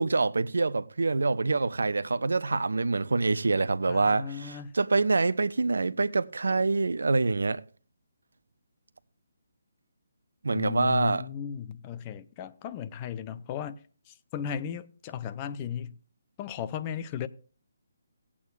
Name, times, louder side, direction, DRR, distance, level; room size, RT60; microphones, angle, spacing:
voice 1, 0.0-7.6 10.4-11.2, right 3 dB, 70° right, 0.5 m, -26 dB
voice 2, 3.9-4.7 10.5-13.8 14.1-16.0 16.4-17.3, left 8 dB, 25° left, 0.6 m, -36 dB
17.5 x 8.5 x 2.4 m
figure-of-eight pair, 145°, 0 cm